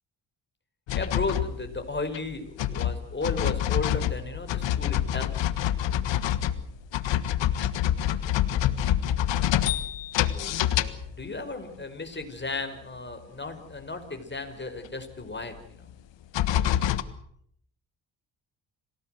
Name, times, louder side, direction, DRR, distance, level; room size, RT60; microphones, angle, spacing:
sound 1, 0.9-2.3 2.6-11.4 12.6-12.7 13.1-13.2 14.8-14.9 15.9-16.0 16.3-17.0, left 11 dB, 75° left, 1.5 m, -26 dB
voice 1, 1.0-5.4 10.3-15.9, left 3 dB, 25° left, 7 dB, 5.8 m, -35 dB
27.5 x 18.5 x 8.0 m, 0.69 s
supercardioid pair, 60°, 44 cm